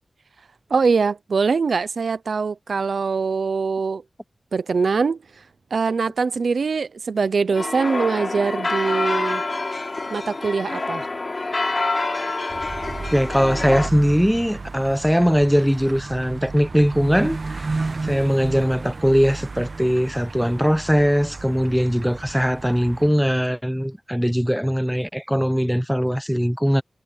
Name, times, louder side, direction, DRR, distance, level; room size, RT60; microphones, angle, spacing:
voice 1, 0.7-4.0 4.5-5.2 5.7-9.4 10.1-11.1, right 5 dB, 75° right, 0.8 m, -22 dB
sound 1, 7.5-13.9, left 3 dB, 40° left, 3.7 m, -26 dB
sound 2, 12.5-23.1, right 3 dB, 55° right, 1.4 m, -33 dB
voice 2, 13.1-26.8, equal, ahead, 1.2 m, -20 dB
wide cardioid pair, 70°, 0 cm